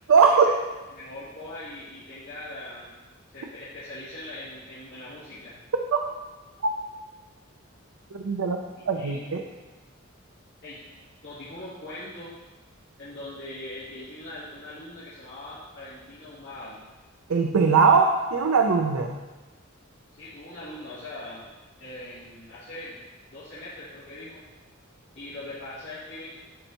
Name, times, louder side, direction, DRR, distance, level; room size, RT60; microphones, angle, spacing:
voice 1, 0.1-0.5 5.9-6.0 6.6-6.7 8.1-8.6 8.9-9.4 17.3-18.0 18.3-19.2, right 5 dB, 90° right, 3 dB, 0.5 m, -20 dB
voice 2, 0.9-2.9 3.3-5.6 8.9-9.3 10.6-10.8 11.2-12.4 13.0-16.8 17.8-18.0 20.1-21.5 21.8-24.4 25.1-26.4, left 1 dB, 55° left, -12 dB, 2.3 m, -41 dB
12.0 x 4.4 x 2.9 m, 1.2 s
head